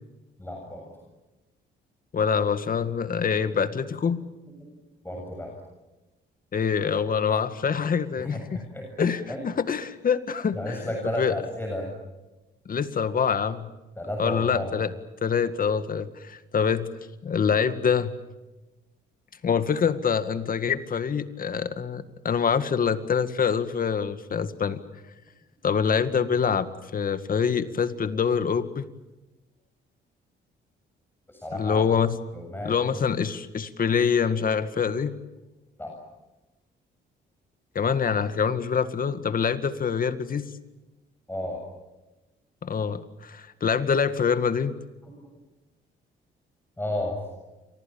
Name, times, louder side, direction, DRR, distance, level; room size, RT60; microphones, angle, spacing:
voice 1, 0.4-0.9 5.0-5.5 8.2-9.4 10.5-11.9 14.0-14.7 31.3-31.8 32.3-32.7 35.8-35.9 41.3-41.6 45.0-45.1 46.8-47.2, left 1 dB, 10° left, 1 dB, 7.3 m, -32 dB
voice 2, 2.1-4.2 6.5-8.4 9.0-10.8 11.2-11.3 12.7-13.7 14.2-14.9 15.2-16.9 17.2-18.1 19.4-24.8 25.6-28.9 31.5-32.2 32.6-35.1 37.8-40.5 42.6-44.8, left 6 dB, 45° left, 11 dB, 2.0 m, -25 dB
30.0 x 24.5 x 7.3 m, 1.1 s
cardioid pair, 90°, 20 cm